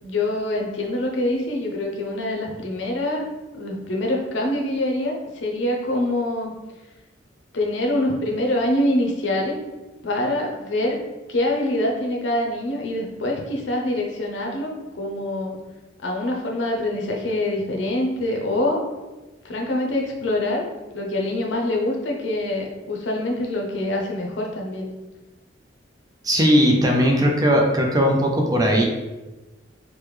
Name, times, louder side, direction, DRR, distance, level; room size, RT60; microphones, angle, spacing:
voice 1, 0.0-3.3 3.5-6.5 7.5-9.6 10.0-11.0 11.3-15.6 16.0-18.8 19.4-20.6 20.9-24.9, left 1 dB, 70° left, 0 dB, 0.6 m, -25 dB
voice 2, 26.2-28.8, equal, 20° right, 1 dB, 0.4 m, -18 dB
3.3 x 2.1 x 3.1 m, 1.1 s
head